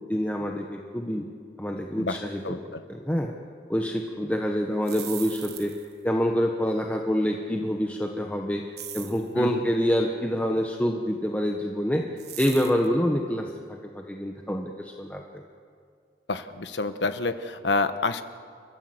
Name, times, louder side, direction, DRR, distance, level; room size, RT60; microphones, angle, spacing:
voice 1, 0.1-1.2 1.6-2.4 2.9-3.3 3.7-5.7 6.0-8.6 8.9-12.0 12.4-15.4, equal, 10° left, 2 dB, 1.2 m, -26 dB
voice 2, 2.4-2.8 9.3-9.6 16.3-18.2, left 3 dB, 90° left, 10 dB, 1.2 m, -28 dB
sound 1, 4.7-6.0 8.8-9.3 12.2-12.9, right 12 dB, 65° right, 1.5 m, -39 dB
29.5 x 14.0 x 7.9 m, 2.2 s
head